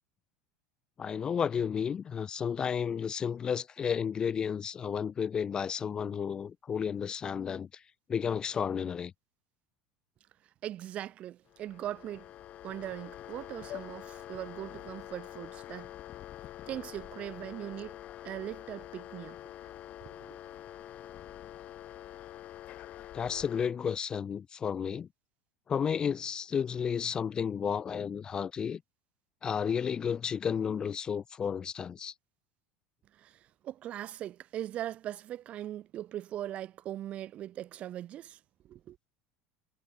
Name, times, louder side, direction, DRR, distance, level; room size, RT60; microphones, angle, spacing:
voice 1, 1.0-7.7 8.1-9.1 23.1-25.1 25.7-28.8 29.4-32.1, left 7 dB, 20° left, 0.4 m, -32 dB
voice 2, 10.6-12.3 12.6-15.9 16.7-19.4 20.0-20.4 33.1-38.4 38.6-39.0, right 12 dB, 35° right, 0.5 m, -40 dB
sound 1, 11.5-23.7, left 13 dB, 35° left, 1.8 m, -46 dB
cardioid pair, 155°, 4 cm